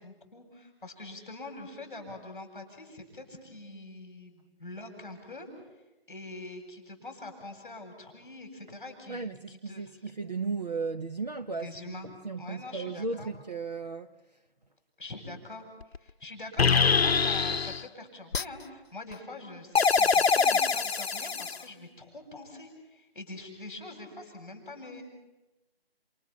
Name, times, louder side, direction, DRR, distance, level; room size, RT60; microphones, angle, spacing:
voice 1, 0.0-5.5 6.1-10.0 11.6-12.1 12.4-13.3 15.0-15.6 16.0-25.0, left 2 dB, 5° left, 7.9 m, -44 dB
voice 2, 9.1-14.1, right 4 dB, 40° right, 0.8 m, -35 dB
sound 1, 15.8-16.0 16.6-17.8 18.3-18.4 19.8-21.6, left 5 dB, 80° left, 0.8 m, -24 dB
29.5 x 28.0 x 6.1 m
figure-of-eight pair, 180°, 31 cm